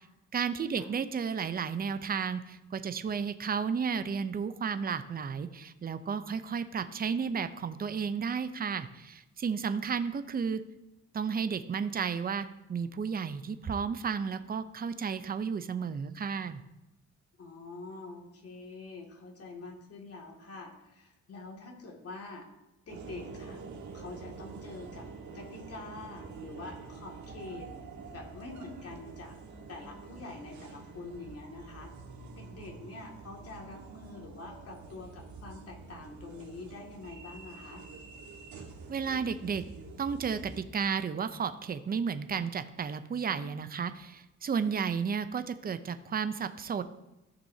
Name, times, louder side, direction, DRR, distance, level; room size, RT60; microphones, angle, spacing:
voice 1, 0.3-10.6 11.1-16.6 38.9-39.6 40.0-46.8, right 6 dB, 30° right, 11 dB, 0.6 m, -33 dB
voice 2, 17.4-22.5 22.8-23.6 23.9-25.1 25.3-27.7 28.1-29.4 29.7-31.9 32.3-37.8, left 3 dB, 50° left, 0 dB, 2.3 m, -45 dB
sound 1, 22.9-40.7, right 4 dB, 70° right, 1.7 m, -47 dB
15.0 x 6.1 x 2.8 m, 0.98 s
cardioid pair, 90°, 30 cm